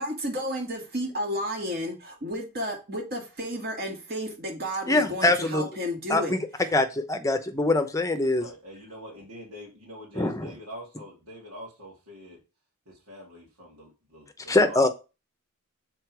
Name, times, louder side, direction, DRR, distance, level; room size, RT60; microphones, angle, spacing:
voice 1, 0.0-6.4, equal, 45° right, 2.3 m, -32 dB
voice 2, 4.9-5.6 6.1-6.5 6.7-8.4 10.2-10.5 14.5-14.9, left 2 dB, 15° left, 0.8 m, -23 dB
voice 3, 8.2-12.4 12.9-14.8, equal, 85° right, 2.9 m, -44 dB
6.5 x 4.4 x 4.7 m
head